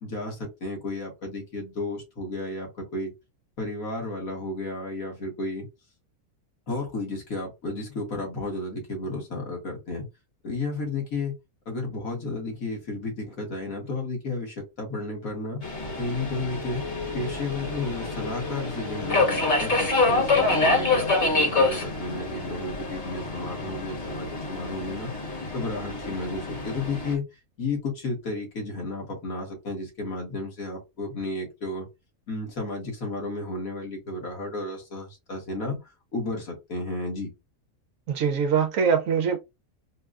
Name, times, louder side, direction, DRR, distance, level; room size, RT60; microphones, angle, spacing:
voice 1, 0.0-3.1 3.6-5.7 6.7-10.1 10.4-11.3 11.7-15.6 16.0-16.8 17.1-25.1 25.5-27.2 27.6-31.9 32.3-35.8 36.1-37.3, left 2 dB, 65° left, 1.8 m, -32 dB
Subway metro underground, 15.6-27.1, left 3 dB, 35° left, 1.2 m, -27 dB
voice 2, 38.1-39.4, right 6 dB, 70° right, 0.9 m, -23 dB
4.5 x 2.2 x 2.4 m
omnidirectional pair, 1.6 m